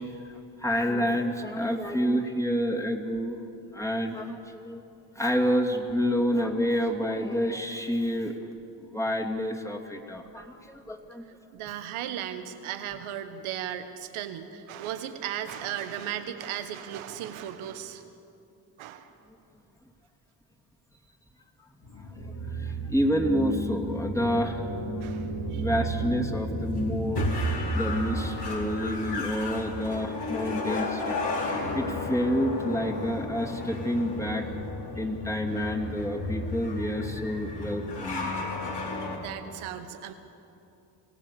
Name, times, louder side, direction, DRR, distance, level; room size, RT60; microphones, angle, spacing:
voice 1, 0.0-3.4 3.7-4.8 5.1-8.3 8.8-11.2 22.0-24.6 25.5-31.2 31.4-34.5 35.0-38.3, equal, 5° left, -1 dB, 2.7 m, -29 dB
voice 2, 11.5-18.0 18.8-19.1 25.0-25.7 39.2-40.1, right 10 dB, 90° right, 9 dB, 1.4 m, -36 dB
sound 1, 21.8-39.2, left 1 dB, 55° left, 4.5 m, -32 dB
26.5 x 16.0 x 7.0 m, 2.8 s
supercardioid pair, 55°, 47 cm